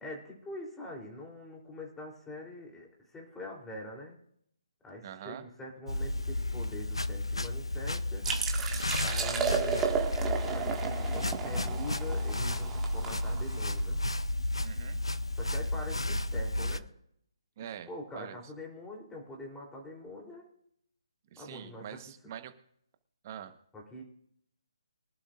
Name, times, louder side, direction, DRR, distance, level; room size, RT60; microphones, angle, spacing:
voice 1, 0.0-4.2 4.8-8.2 9.0-9.9 10.5-12.7 12.9-14.0 15.4-16.8 17.9-20.5 21.4-21.8 23.7-24.0, left 1 dB, 10° left, -1 dB, 3.4 m, -44 dB
voice 2, 5.0-5.5 14.6-15.0 17.6-17.9 18.1-18.4 21.3-22.5 23.2-23.5, right 9 dB, 35° right, 9 dB, 1.2 m, -44 dB
Brushing Off, 5.9-16.8, left 1 dB, 90° left, 0.6 m, -32 dB
sound 1, 8.2-13.8, right 6 dB, 10° right, 1.8 m, -33 dB
23.5 x 11.5 x 2.6 m, 0.71 s
figure-of-eight pair, 145°, 3 cm